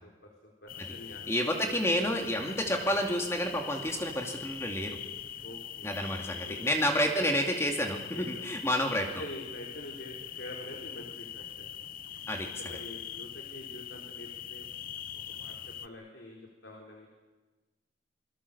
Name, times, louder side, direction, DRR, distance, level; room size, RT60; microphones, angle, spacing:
voice 1, 0.0-1.8 5.4-5.9 6.4-6.8 8.1-8.4 9.2-11.7 12.6-14.7 15.1-17.1, left 1 dB, 80° left, -1 dB, 4.3 m, -46 dB
sound 1, 0.7-15.9, left 10 dB, 50° left, 0.8 m, -42 dB
voice 2, 1.3-5.0 5.8-9.1 12.3-12.8, equal, 15° left, 2 dB, 2.5 m, -30 dB
28.0 x 21.0 x 6.9 m, 1.2 s
head